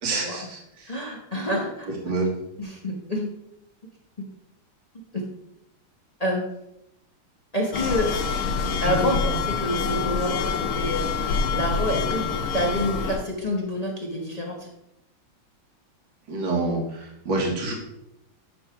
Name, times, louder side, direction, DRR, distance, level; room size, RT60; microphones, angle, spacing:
voice 1, 0.0-0.9 2.0-2.3 16.3-17.7, right 2 dB, 60° right, -1 dB, 2.4 m, -27 dB
voice 2, 0.9-1.9 2.6-3.3 5.1-5.2 6.2-6.4 7.5-8.1 8.8-12.3 12.5-14.7, left 1 dB, 25° left, -2 dB, 0.8 m, -27 dB
sound 1, 7.7-13.2, left 5 dB, 80° left, 1.8 m, -26 dB
9.9 x 3.4 x 6.0 m, 0.84 s
omnidirectional pair, 2.3 m